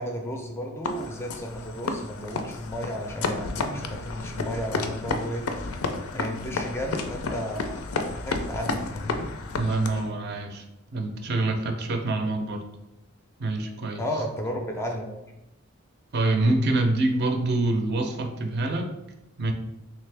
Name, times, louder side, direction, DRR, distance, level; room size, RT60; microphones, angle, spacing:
voice 1, 0.0-7.7 8.1-9.3 14.0-15.2, equal, 10° left, 2 dB, 0.3 m, -33 dB
sound 1, 0.8-10.1, left 3 dB, 75° left, 0.4 m, -32 dB
voice 2, 9.6-10.6 10.9-12.6 13.4-14.0 16.1-19.0 19.4-19.5, right 2 dB, 50° right, 4 dB, 0.5 m, -25 dB
3.3 x 3.1 x 3.3 m, 0.91 s
head